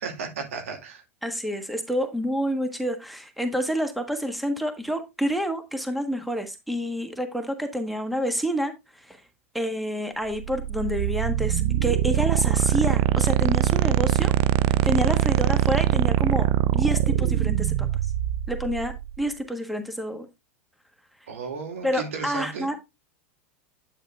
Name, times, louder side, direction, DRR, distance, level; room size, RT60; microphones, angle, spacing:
voice 1, 0.0-1.0 21.3-22.7, right 5 dB, 75° right, 2.3 m, -34 dB
voice 2, 1.2-9.2 9.5-14.3 14.8-17.9 18.5-20.3 21.8-22.8, equal, ahead, 1.4 m, -28 dB
sound 1, 10.3-19.2, right 12 dB, 50° right, 0.5 m, -23 dB
8.9 x 8.0 x 2.4 m
hypercardioid pair, 95°, 7 cm